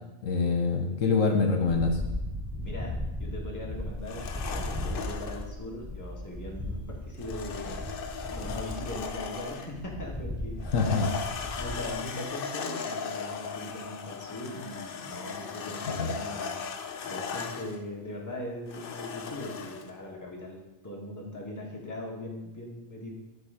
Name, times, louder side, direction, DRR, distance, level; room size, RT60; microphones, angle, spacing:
voice 1, 0.2-2.0 10.7-11.1 16.0-16.1, left 4 dB, 75° left, 3 dB, 1.3 m, -25 dB
sound 1, 1.7-11.9, left 1 dB, ahead, 0.6 m, -37 dB
voice 2, 2.6-7.8 8.3-11.2 11.6-16.6 17.0-23.1, left 1 dB, 15° left, -3 dB, 1.5 m, -40 dB
sound 2, 4.0-5.5 7.2-9.8 10.6-17.8 18.7-19.9, left 6 dB, 55° left, 0.7 m, -37 dB
9.9 x 4.2 x 4.9 m, 1.0 s
omnidirectional pair, 1.4 m